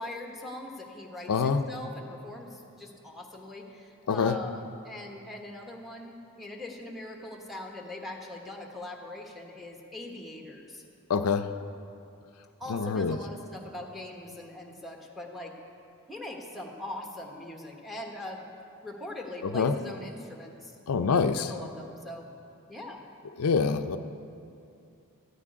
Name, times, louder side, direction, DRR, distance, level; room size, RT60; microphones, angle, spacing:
voice 1, 0.0-10.8 12.6-15.5 16.1-18.4 18.8-20.8 21.3-22.3 22.7-23.0, left 1 dB, ahead, 1 dB, 1.2 m, -41 dB
voice 2, 1.3-1.6 4.1-4.4 11.1-11.5 12.7-13.2 19.4-19.7 20.9-21.5 23.4-24.0, left 5 dB, 75° left, 9 dB, 0.5 m, -25 dB
13.5 x 6.1 x 9.4 m, 2.7 s
head